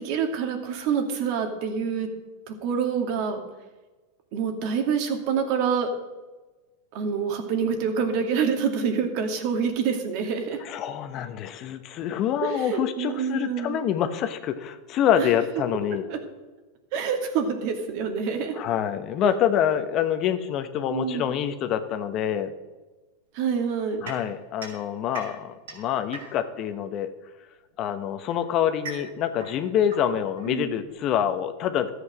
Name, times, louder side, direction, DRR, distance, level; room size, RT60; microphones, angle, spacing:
voice 1, 0.0-2.1 2.5-3.4 4.3-5.9 6.9-10.6 12.4-13.8 15.2-15.3 16.1-16.2 16.9-18.6 20.9-21.3 23.3-24.0 30.5-30.7, right 6 dB, 55° right, 4 dB, 2.3 m, -26 dB
voice 2, 10.6-16.0 18.6-22.5 24.0-27.1 27.8-31.9, left 9 dB, 45° left, 9 dB, 1.1 m, -26 dB
sound 1, 24.1-26.7 27.7-31.0, right 3 dB, 80° right, 5.1 m, -43 dB
13.5 x 8.0 x 6.3 m, 1.2 s
hypercardioid pair, 105°, 0 cm